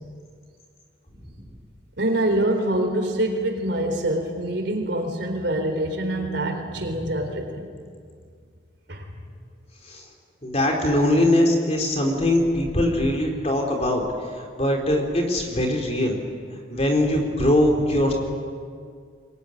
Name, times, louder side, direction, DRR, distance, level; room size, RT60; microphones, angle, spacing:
voice 1, 2.0-7.7 8.9-9.1, right 1 dB, 65° right, 4 dB, 3.9 m, -25 dB
voice 2, 10.4-14.0 14.6-16.2 16.7-18.1, left 1 dB, 35° left, 2 dB, 3.9 m, -21 dB
23.5 x 21.0 x 10.0 m, 2.1 s
head